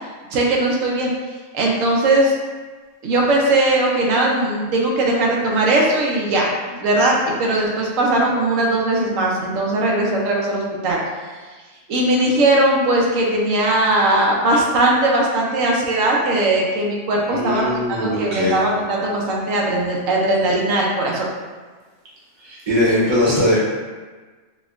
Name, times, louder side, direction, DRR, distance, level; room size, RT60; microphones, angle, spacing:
voice 1, 0.3-1.1 1.5-2.3 3.0-6.5 6.8-11.0 11.9-21.3, right 2 dB, 85° right, -2 dB, 1.0 m, -19 dB
voice 2, 17.3-18.6 22.4-23.6, left 1 dB, 25° right, -7 dB, 0.7 m, -20 dB
4.2 x 2.2 x 2.4 m, 1.4 s
omnidirectional pair, 1.3 m